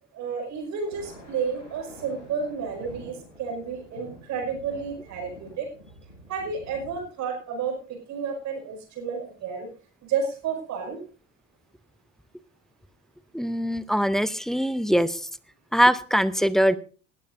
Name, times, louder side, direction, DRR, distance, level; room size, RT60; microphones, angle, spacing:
voice 1, 0.1-5.7 6.3-9.7 10.0-11.0, right 6 dB, 50° right, 2 dB, 5.7 m, -31 dB
Thunder, 0.8-7.0, equal, 85° left, 4.4 m, -47 dB
voice 2, 13.3-15.3 15.7-16.8, equal, ahead, 16 dB, 0.7 m, -22 dB
19.5 x 13.5 x 2.7 m, 0.38 s
figure-of-eight pair, 65°, 37 cm